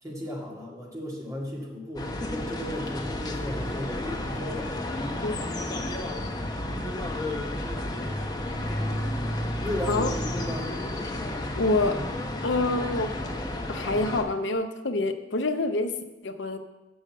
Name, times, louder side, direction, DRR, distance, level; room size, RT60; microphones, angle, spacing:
voice 1, 0.0-4.7 8.7-9.1 9.6-10.8, equal, 20° right, -3 dB, 2.0 m, -35 dB
sound 1, 2.0-14.2, left 1 dB, 20° left, 0.9 m, -31 dB
voice 2, 11.6-12.0 12.4-13.2 13.7-16.0 16.2-16.6, left 2 dB, 75° left, 8 dB, 0.7 m, -26 dB
6.5 x 6.4 x 7.5 m, 1.1 s
head